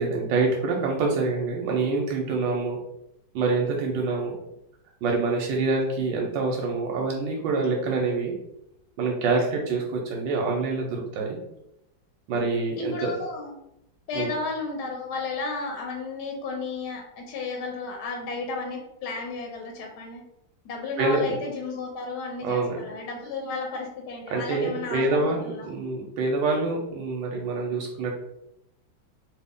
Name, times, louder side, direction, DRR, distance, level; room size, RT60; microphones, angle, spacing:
voice 1, 0.0-2.8 3.3-4.4 5.0-8.3 9.0-11.4 12.3-13.1 14.1-14.3 21.0-21.3 22.4-22.8 24.3-28.1, right 3 dB, 90° right, 0 dB, 1.3 m, -26 dB
voice 2, 12.8-13.5 14.1-20.2 20.6-25.7, left 3 dB, 70° left, 1 dB, 1.1 m, -33 dB
3.2 x 2.5 x 3.5 m, 0.83 s
omnidirectional pair, 1.9 m